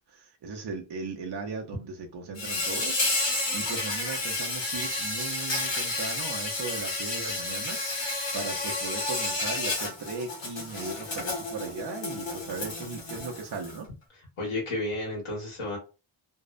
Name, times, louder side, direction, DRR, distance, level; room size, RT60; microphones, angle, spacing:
voice 1, 0.0-13.9, right 4 dB, 55° right, 1 dB, 0.6 m, -38 dB
Insect, 2.3-13.8, left 2 dB, 65° left, 1.0 m, -31 dB
voice 2, 14.4-15.8, left 2 dB, 85° left, -3 dB, 1.3 m, -32 dB
2.6 x 2.0 x 2.4 m, 0.30 s
wide cardioid pair, 130°, 49 cm